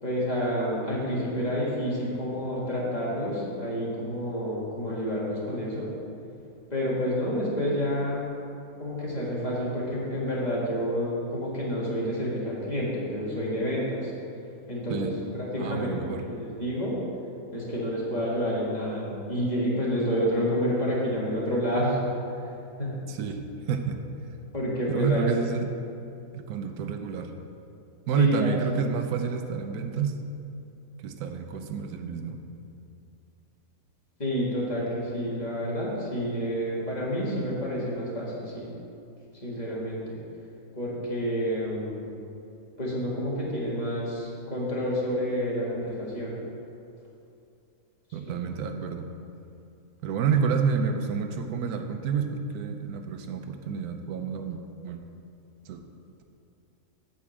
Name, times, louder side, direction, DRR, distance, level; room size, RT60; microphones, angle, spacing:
voice 1, 0.0-5.9 6.7-8.3 8.8-14.1 14.7-15.9 16.3-17.0 17.5-22.0 22.4-22.9 24.5-25.3 28.2-28.5 34.2-38.7 39.4-40.2 40.7-42.1 42.8-46.4 48.3-48.4, equal, 30° left, -6 dB, 1.8 m, -29 dB
voice 2, 15.6-16.2 23.1-23.4 23.7-24.0 24.9-25.7 26.3-27.3 28.1-30.2 31.0-32.4 48.1-49.1 50.0-55.0 55.7-55.8, right 6 dB, 85° right, 6 dB, 1.1 m, -29 dB
8.4 x 4.3 x 7.2 m, 2.6 s
omnidirectional pair, 1.6 m